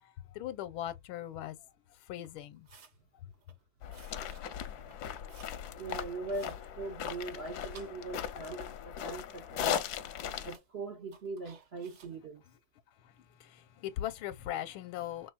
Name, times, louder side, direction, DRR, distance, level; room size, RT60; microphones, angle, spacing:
voice 1, 0.0-2.7 3.1-3.3 12.9-15.3, left 12 dB, 85° left, 1.4 m, -40 dB
sound 1, 2.2-3.0 3.3-3.6 3.9-4.5 4.7-5.6 5.9-6.6 7.0-8.4 8.7-9.4 9.7-9.8 10.3-10.7 11.1-12.2, right 5 dB, 50° right, 1.3 m, -58 dB
sound 2, 3.8-10.6, left 9 dB, 70° left, 0.9 m, -38 dB
voice 2, 5.7-9.8 10.4-12.4, right 3 dB, 65° right, 0.6 m, -41 dB
6.0 x 3.3 x 2.2 m
omnidirectional pair, 2.3 m